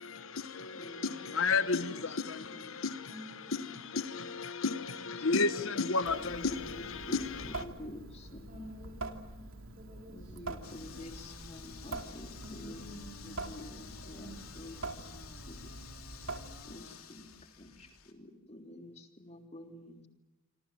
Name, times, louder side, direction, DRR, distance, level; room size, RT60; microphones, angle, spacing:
voice 1, 0.0-7.6, left 4 dB, 70° left, 1.2 m, -33 dB
voice 2, 0.7-1.1 1.8-2.1 2.4-2.8 4.9-5.1 6.2-8.7 10.1-12.9 13.2-15.6 16.6-17.3 17.6-20.1, left 1 dB, 30° left, 3.5 m, -49 dB
voice 3, 3.1-3.7 8.5-11.0 12.4-14.5, equal, 40° right, 7.3 m, -50 dB
Water tap faucet / Sink (filling or washing) / Drip, 6.0-16.9, right 2 dB, 75° right, 2.7 m, -45 dB
sound 1, 10.6-18.1, left 6 dB, 90° left, 3.0 m, -51 dB
27.5 x 26.5 x 7.6 m
head